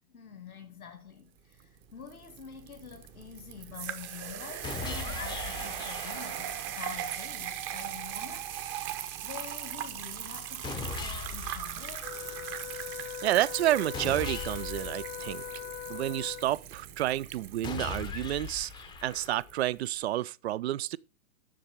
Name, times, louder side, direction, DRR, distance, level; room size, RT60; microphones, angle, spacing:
voice 1, 0.1-12.1, left 7 dB, 80° left, 1.8 m, -47 dB
sound 1, 1.6-19.6, right 10 dB, 25° right, 0.9 m, -40 dB
sound 2, 4.6-6.7 10.6-12.7 13.9-16.0 17.6-19.7, left 5 dB, 10° left, 0.7 m, -40 dB
Wind instrument woodwind instrument, 12.0-16.6, left 16 dB, 60° left, 1.0 m, -41 dB
voice 2, 13.2-15.4 15.9-18.7 19.0-21.0, right 14 dB, 50° right, 0.4 m, -30 dB
7.4 x 6.5 x 5.7 m
figure-of-eight pair, 110°, 42 cm